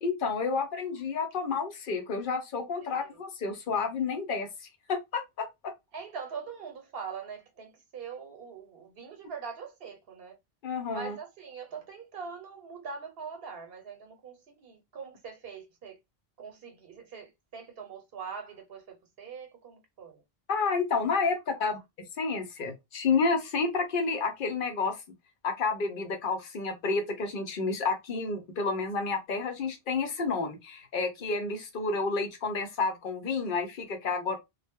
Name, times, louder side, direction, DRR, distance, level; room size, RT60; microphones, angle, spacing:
voice 1, 0.0-4.5 4.9-5.7 10.6-11.2 20.5-21.8 22.2-25.0 25.4-34.4, left 4 dB, 60° left, 0.8 m, -30 dB
voice 2, 5.9-10.4 10.9-16.0 16.4-20.2, right 6 dB, 70° right, 0.9 m, -43 dB
2.0 x 2.0 x 3.4 m
omnidirectional pair, 1.0 m